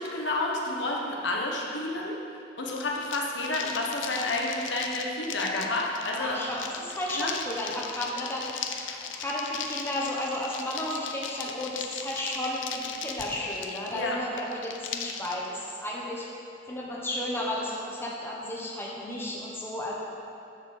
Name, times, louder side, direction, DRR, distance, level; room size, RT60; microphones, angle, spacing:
voice 1, 0.0-2.2 2.6-6.4 7.1-7.3 8.9-9.0 13.9-14.2, left 2 dB, 70° left, -2 dB, 1.2 m, -30 dB
sound 1, 2.7-15.3, left 7 dB, 85° left, 0.6 m, -38 dB
voice 2, 6.1-16.3 16.7-19.9, left 1 dB, 15° left, -4 dB, 1.3 m, -33 dB
10.0 x 4.7 x 6.6 m, 2.6 s
head